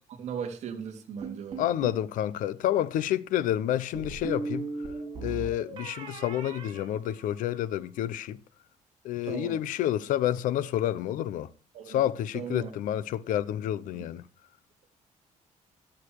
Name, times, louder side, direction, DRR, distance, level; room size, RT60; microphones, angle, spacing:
voice 1, 0.1-1.7 9.2-9.6 11.7-12.0 12.3-12.7 13.9-14.1, right 7 dB, 55° right, 3.2 m, -37 dB
sound 1, 1.2-2.0 3.9-7.7, right 3 dB, 40° right, 8.0 m, -38 dB
voice 2, 1.6-4.6 5.2-8.4 9.0-11.5 11.9-14.3, left 12 dB, 85° left, 1.0 m, -29 dB
13.5 x 13.5 x 4.8 m
cardioid pair, 165°, 13 cm